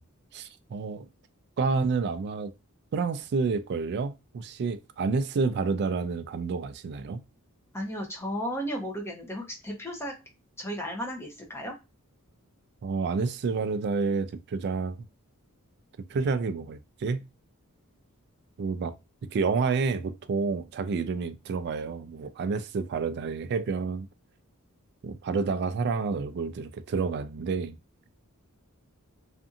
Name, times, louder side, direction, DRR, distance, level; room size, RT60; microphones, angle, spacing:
voice 1, 0.3-1.1 1.6-2.5 2.9-7.2 12.8-15.0 16.1-17.2 18.6-18.9 19.3-24.1 25.0-27.8, right 4 dB, 50° right, 0.3 m, -29 dB
voice 2, 7.7-10.1 10.6-11.8, equal, 10° left, 0.7 m, -34 dB
2.6 x 2.5 x 2.4 m
head